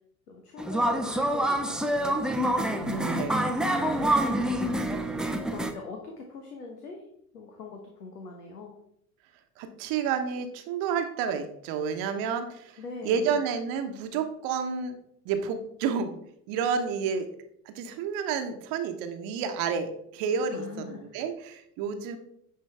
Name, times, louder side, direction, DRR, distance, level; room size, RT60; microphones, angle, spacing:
voice 1, 0.3-2.3 2.6-3.3 3.6-4.8 5.4-7.0 7.3-8.8 12.8-13.4 20.5-21.1, left 3 dB, 80° left, 2 dB, 1.2 m, -42 dB
sound 1, 0.6-5.7, right 1 dB, ahead, 0.6 m, -27 dB
voice 2, 2.8-3.4 9.6-15.0 15.2-16.2 16.5-17.3 17.7-22.2, right 6 dB, 50° right, 7 dB, 1.1 m, -30 dB
10.0 x 5.1 x 3.4 m, 0.71 s
figure-of-eight pair, 70°, 46 cm